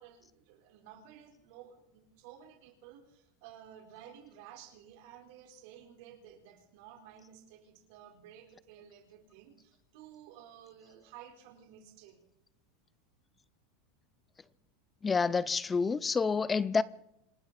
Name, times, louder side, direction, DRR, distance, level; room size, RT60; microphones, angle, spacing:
voice 1, 0.0-12.2, right 9 dB, 55° right, 4.1 m, -54 dB
voice 2, 15.0-16.8, left 5 dB, 15° left, 0.5 m, -28 dB
27.0 x 12.5 x 4.2 m
supercardioid pair, 160°, 0 cm